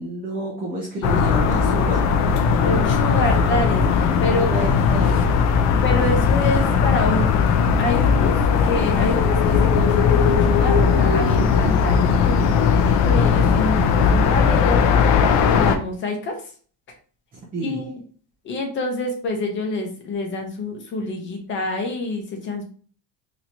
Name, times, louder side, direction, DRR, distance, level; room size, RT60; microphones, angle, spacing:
voice 1, 0.0-2.1 4.3-5.4 17.5-17.9, right 1 dB, 25° right, -3 dB, 0.7 m, -30 dB
sound 1, 1.0-15.8, left 6 dB, 50° left, 0.5 m, -18 dB
voice 2, 2.6-4.7 5.8-16.5 17.6-17.9 18.4-22.6, left 2 dB, 30° left, 2 dB, 0.9 m, -27 dB
3.9 x 3.0 x 2.9 m, 0.43 s
cardioid pair, 170°, 36 cm